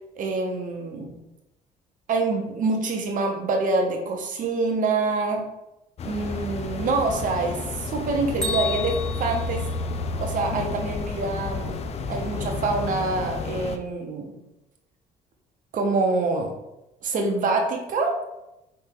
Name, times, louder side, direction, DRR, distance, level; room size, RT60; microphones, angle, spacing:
voice 1, 0.2-1.1 2.1-5.4 6.0-9.6 10.2-11.8 12.1-14.3 15.7-16.5 17.0-18.2, right 3 dB, 50° right, 2 dB, 1.0 m, -26 dB
sound 1, 6.0-13.8, left 3 dB, 40° left, 0.4 m, -31 dB
Bell, 8.4-10.4, left 3 dB, 5° left, 1.3 m, -33 dB
4.5 x 3.2 x 3.7 m, 0.93 s
cardioid pair, 110°, 17 cm